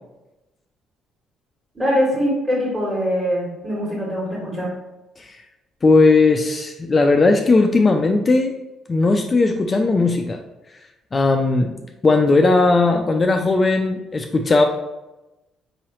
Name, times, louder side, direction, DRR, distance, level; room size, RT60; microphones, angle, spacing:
voice 1, 1.7-4.7, equal, 10° right, -7 dB, 1.4 m, -22 dB
voice 2, 5.8-8.5 8.9-10.4 11.1-11.7 12.0-14.6, left 3 dB, 25° left, 3 dB, 0.3 m, -17 dB
4.7 x 2.9 x 3.0 m, 0.99 s
cardioid pair, 130°, 0 cm